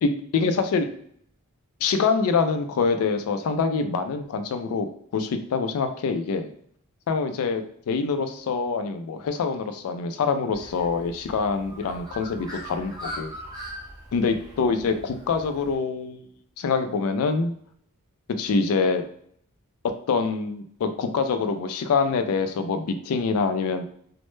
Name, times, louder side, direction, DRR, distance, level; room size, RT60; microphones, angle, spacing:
voice 1, 0.0-0.9 1.8-4.9 5.1-6.5 7.1-13.3 14.1-16.2 16.6-17.5 18.4-19.1 20.1-23.8, left 4 dB, 75° left, 8 dB, 0.3 m, -25 dB
Bird, 10.5-15.7, equal, 15° right, 0.5 m, -40 dB
2.1 x 2.0 x 3.0 m, 0.66 s
head